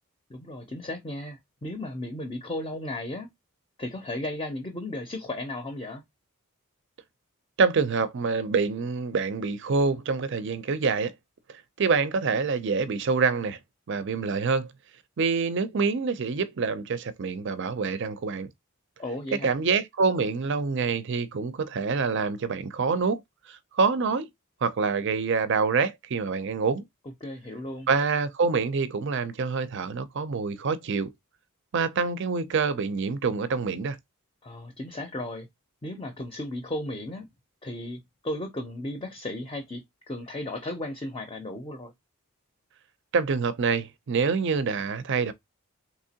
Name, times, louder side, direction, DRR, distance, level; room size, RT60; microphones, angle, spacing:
voice 1, 0.3-3.3 3.8-6.0 19.0-19.5 27.2-27.9 34.4-35.5 35.8-37.3 37.6-41.9, left 1 dB, 20° left, 0.5 m, -35 dB
voice 2, 7.6-11.1 11.5-13.6 13.9-14.7 15.2-18.5 19.4-23.2 23.5-24.3 24.6-26.8 27.9-31.1 31.7-34.0 43.1-45.3, right 4 dB, 55° right, 0.5 m, -26 dB
3.6 x 2.9 x 2.8 m
head